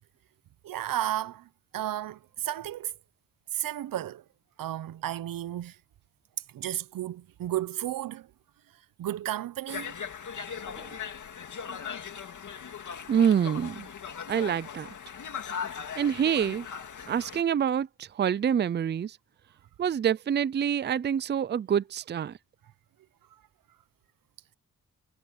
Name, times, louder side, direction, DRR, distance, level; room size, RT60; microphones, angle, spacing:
voice 1, 0.6-2.9 3.5-4.2 4.6-5.8 6.5-8.3 9.0-9.9 12.9-13.0, right 13 dB, 90° right, 0.7 m, -33 dB
Conversation, 9.7-17.4, left 7 dB, 60° left, 2.3 m, -39 dB
voice 2, 13.1-13.9 14.3-14.9 16.0-16.7 17.1-19.2 19.8-22.4, right 8 dB, 35° right, 0.4 m, -26 dB
wide cardioid pair, 120°, 33 cm